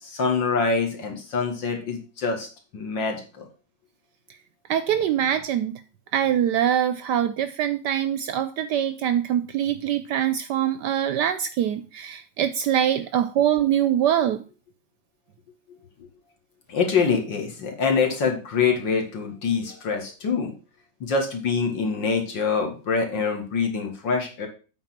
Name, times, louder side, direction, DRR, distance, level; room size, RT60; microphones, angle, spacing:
voice 1, 0.0-2.5 2.7-3.5 16.7-20.5 21.0-24.5, left 5 dB, 65° left, 2 dB, 2.3 m, -25 dB
voice 2, 4.7-5.8 6.1-14.4, right 10 dB, 70° right, 11 dB, 1.0 m, -23 dB
8.6 x 4.0 x 5.9 m, 0.36 s
omnidirectional pair, 2.2 m